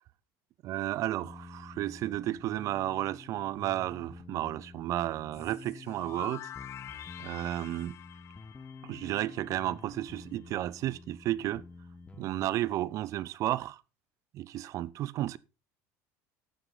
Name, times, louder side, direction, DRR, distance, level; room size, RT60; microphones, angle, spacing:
voice 1, 0.6-6.5 7.2-8.0 8.8-11.6 12.2-13.8 14.3-15.4, right 14 dB, 50° right, 0.5 m, -33 dB
sound 1, 1.2-12.6, left 4 dB, 15° left, 1.2 m, -49 dB
sound 2, 5.3-10.1, left 11 dB, 40° left, 0.5 m, -47 dB
11.5 x 9.0 x 3.9 m
supercardioid pair, 115°, 7 cm